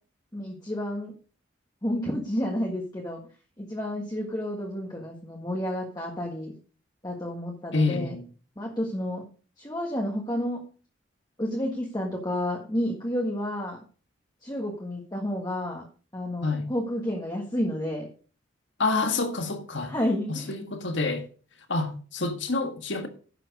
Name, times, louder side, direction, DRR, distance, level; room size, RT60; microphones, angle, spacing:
voice 1, 0.3-1.1 1.8-3.2 3.6-6.5 7.0-8.2 8.6-9.2 9.6-10.6 11.4-13.8 14.4-15.8 16.1-18.1 19.9-20.5, left 1 dB, 20° left, 1.6 m, -30 dB
voice 2, 7.7-8.2 16.4-16.7 18.8-19.9 20.3-21.3 21.7-23.1, left 3 dB, 70° left, 1.7 m, -27 dB
11.0 x 7.5 x 5.2 m
head